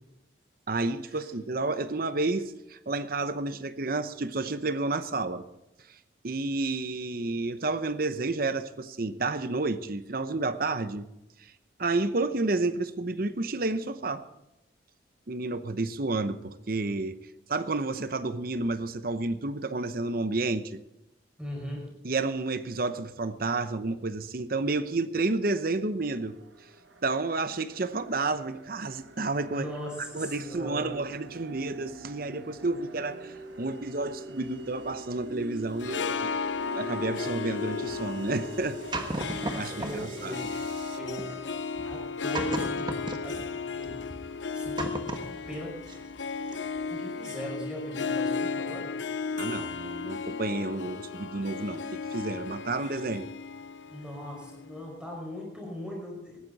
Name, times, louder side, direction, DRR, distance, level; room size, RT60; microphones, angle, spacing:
voice 1, 0.7-5.4 6.2-11.1 11.4-11.5 11.8-14.2 15.3-17.2 17.5-20.8 22.0-26.4 27.0-29.7 30.1-36.3 36.7-38.8 39.1-40.4 49.4-53.3, right 3 dB, 50° right, 12 dB, 0.8 m, -30 dB
voice 2, 21.4-21.9 29.5-30.9 39.5-40.5 40.9-41.3 41.8-43.9 44.5-45.0 45.5-45.8 46.9-48.9 53.9-56.4, equal, 5° right, -1 dB, 5.6 m, -39 dB
sound 1, 26.1-41.0, right 2 dB, 80° right, 1.6 m, -45 dB
Harp, 35.7-55.0, left 5 dB, 85° left, 0.7 m, -35 dB
sound 2, 37.9-40.1 40.4-46.2 46.5-46.8, right 2 dB, 25° right, 1.3 m, -37 dB
19.0 x 15.0 x 4.1 m, 0.90 s
head